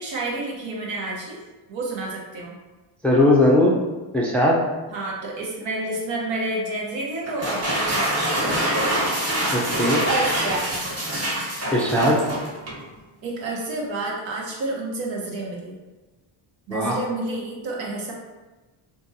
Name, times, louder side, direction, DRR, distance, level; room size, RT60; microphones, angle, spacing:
voice 1, 0.0-1.4 1.7-2.6 4.9-9.0 9.9-10.9 13.2-15.8 16.7-18.1, right 2 dB, 65° right, -3 dB, 1.1 m, -29 dB
voice 2, 3.0-3.7 4.1-4.6 9.5-10.0 11.7-12.2 16.7-17.0, left 1 dB, 5° left, -3 dB, 0.5 m, -18 dB
sound 1, 7.2-12.8, right 1 dB, 30° right, 1.3 m, -25 dB
3.8 x 2.6 x 2.7 m, 1.2 s
cardioid pair, 95°, 48 cm